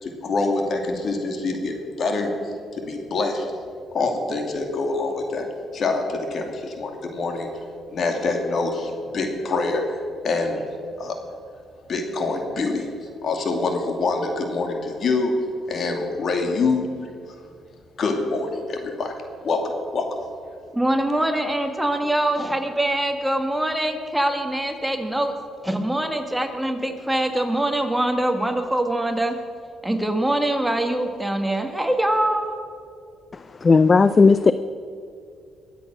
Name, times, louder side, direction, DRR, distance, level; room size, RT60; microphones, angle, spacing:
voice 1, 0.0-2.3 2.7-3.5 3.9-5.5 5.7-7.5 7.9-10.0 10.2-10.6 11.0-11.3 11.9-12.9 13.2-15.3 15.7-16.9 17.3-17.4 18.0-19.1 19.4-20.1, left 3 dB, 55° left, 4 dB, 2.5 m, -25 dB
voice 2, 20.7-25.4 25.6-29.4 29.8-32.5, right 1 dB, 5° right, 5 dB, 1.6 m, -23 dB
voice 3, 33.6-34.5, left 4 dB, 35° left, 13 dB, 0.4 m, -14 dB
22.0 x 8.2 x 6.2 m, 2.4 s
cardioid pair, 90°, 0 cm